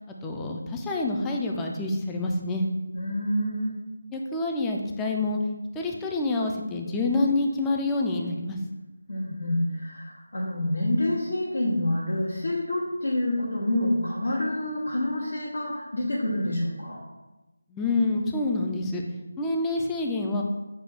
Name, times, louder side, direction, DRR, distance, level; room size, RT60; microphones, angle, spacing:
voice 1, 0.1-2.7 4.1-5.4 5.7-8.6 17.7-19.0 19.4-20.4, left 2 dB, 10° left, 1 dB, 0.3 m, -27 dB
voice 2, 2.9-3.7 9.1-17.0, left 1 dB, 70° left, -6 dB, 1.0 m, -27 dB
6.5 x 2.3 x 3.4 m, 1.1 s
figure-of-eight pair, 165°, 0 cm